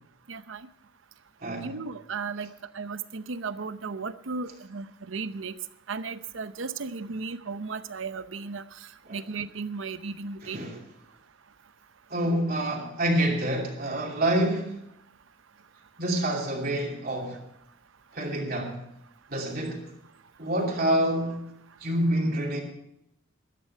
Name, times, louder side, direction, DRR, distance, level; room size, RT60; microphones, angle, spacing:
voice 1, 0.3-0.7 1.6-5.5 5.9-8.6 9.1-10.6, right 4 dB, 70° right, 0.7 m, -35 dB
voice 2, 1.4-1.8 9.1-9.2 10.4-10.8 12.1-14.7 16.0-17.4 18.1-18.8 19.3-19.9 20.4-21.4 21.8-22.6, right 1 dB, 45° right, 2.8 m, -27 dB
14.0 x 12.5 x 5.6 m
head